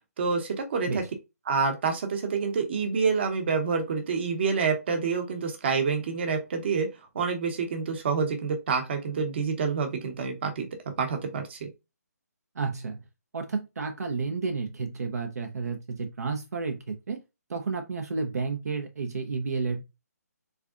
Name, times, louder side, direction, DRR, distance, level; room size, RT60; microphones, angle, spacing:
voice 1, 0.2-1.0 1.5-6.9 7.1-10.7 11.0-11.7, right 5 dB, 40° right, 1.0 m, -27 dB
voice 2, 12.6-13.0 13.3-17.2 17.5-19.8, right 4 dB, 65° right, 0.7 m, -31 dB
3.7 x 3.3 x 2.4 m
hypercardioid pair, 160°, 9 cm